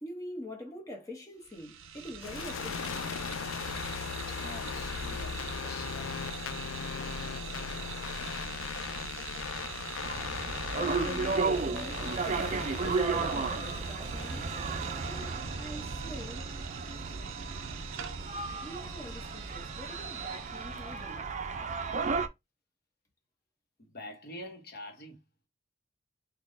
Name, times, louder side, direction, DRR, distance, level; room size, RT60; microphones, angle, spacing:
voice 1, 0.0-3.1 10.8-14.5 15.0-16.5 18.6-21.3, left 1 dB, 15° left, 1.0 m, -45 dB
sound 1, 1.4-21.1, right 7 dB, 80° right, 0.6 m, -43 dB
sound 2, 2.2-15.0, left 6 dB, 75° left, 0.4 m, -38 dB
voice 2, 4.3-6.6 23.8-25.2, left 1 dB, 50° left, 1.1 m, -46 dB
sound 3, 10.0-22.3, right 4 dB, 35° right, 0.5 m, -34 dB
4.1 x 2.3 x 3.8 m
head